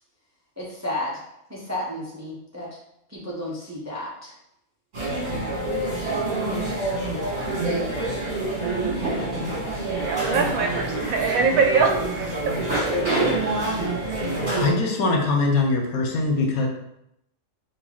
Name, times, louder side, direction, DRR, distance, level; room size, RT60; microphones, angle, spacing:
voice 1, 0.6-1.2 1.5-2.8 3.1-4.3, left 1 dB, 20° right, -6 dB, 0.4 m, -32 dB
sound 1, 4.9-14.7, right 2 dB, 35° right, 1.4 m, -26 dB
voice 2, 10.0-12.3, right 5 dB, 75° right, 3 dB, 0.9 m, -22 dB
voice 3, 14.6-16.7, left 3 dB, 75° left, 2 dB, 1.1 m, -22 dB
3.9 x 2.7 x 3.0 m, 0.79 s
omnidirectional pair, 1.5 m